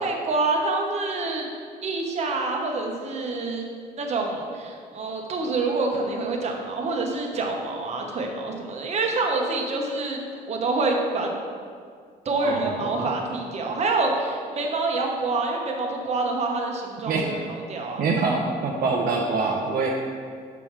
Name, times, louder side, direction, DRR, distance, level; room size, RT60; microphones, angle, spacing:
voice 1, 0.0-1.5 1.8-3.6 4.0-10.2 10.5-11.3 12.2-18.0, right 3 dB, 40° right, 1 dB, 1.1 m, -27 dB
voice 2, 12.4-13.1 17.0-17.3 18.0-19.9, right 4 dB, 60° right, -2 dB, 0.8 m, -25 dB
6.0 x 5.7 x 4.7 m, 2.1 s
cardioid pair, 110°, 17 cm